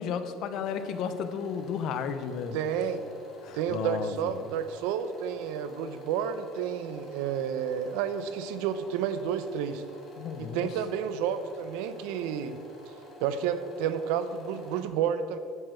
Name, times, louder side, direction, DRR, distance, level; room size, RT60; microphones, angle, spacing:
voice 1, 0.0-2.6 3.4-4.5 10.2-10.7, left 6 dB, 50° left, 10 dB, 0.7 m, -33 dB
sound 1, 0.6-14.8, left 2 dB, 35° left, 2.3 m, -49 dB
voice 2, 2.5-3.1 3.5-9.8 10.4-12.6 13.2-15.4, right 8 dB, 85° right, 11 dB, 0.7 m, -30 dB
9.9 x 6.9 x 6.3 m, 2.5 s
cardioid pair, 170°, 0 cm